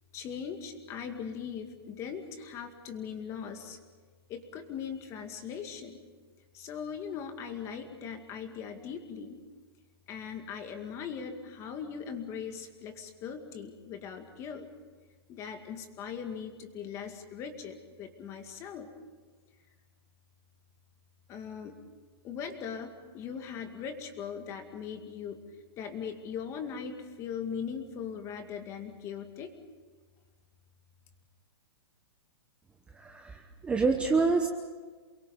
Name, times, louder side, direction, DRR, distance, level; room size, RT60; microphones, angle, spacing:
voice 1, 0.1-3.8 4.3-6.0 6.5-9.4 10.1-14.7 15.3-18.9 21.3-21.7 22.2-25.4 25.8-29.5, left 7 dB, 20° left, 6 dB, 2.2 m, -40 dB
voice 2, 32.9-34.5, right 4 dB, 10° right, 4 dB, 0.9 m, -27 dB
28.5 x 22.5 x 5.4 m, 1.4 s
hypercardioid pair, 160°, 14 cm